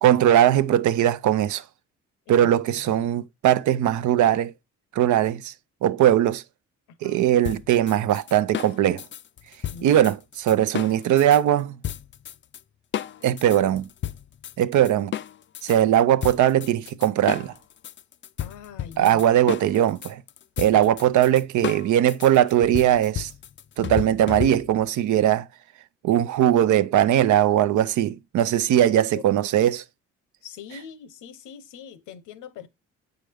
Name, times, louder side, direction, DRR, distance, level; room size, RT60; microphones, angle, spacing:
voice 1, 0.0-1.6 2.3-4.5 5.0-5.5 5.8-6.4 7.0-9.0 9.8-11.8 13.2-13.9 14.6-15.1 15.6-17.5 19.0-20.2 20.6-23.3 23.8-25.5 26.0-29.8, right 11 dB, 75° right, 0.6 m, -20 dB
voice 2, 6.9-7.3 9.7-10.1 18.4-19.2 20.7-20.9 28.9-29.2 29.7-29.8 30.4-32.7, left 8 dB, 90° left, 0.9 m, -42 dB
sound 1, 7.4-11.4 11.8-12.6 12.9-15.8 16.2-24.9, left 11 dB, 40° left, 0.4 m, -33 dB
7.9 x 4.9 x 3.4 m
cardioid pair, 90°, 30 cm